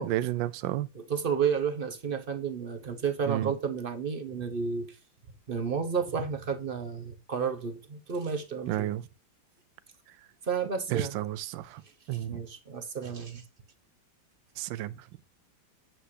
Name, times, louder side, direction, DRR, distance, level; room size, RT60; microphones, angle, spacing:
voice 1, 0.0-0.9 3.3-3.5 8.7-9.1 10.9-11.8 12.1-12.4 14.6-15.0, right 14 dB, 80° right, 1.3 m, -31 dB
voice 2, 0.9-5.0 5.5-8.9 10.4-11.2 12.1-13.4, right 6 dB, 35° right, 0.9 m, -31 dB
8.2 x 7.8 x 2.8 m
omnidirectional pair, 2.1 m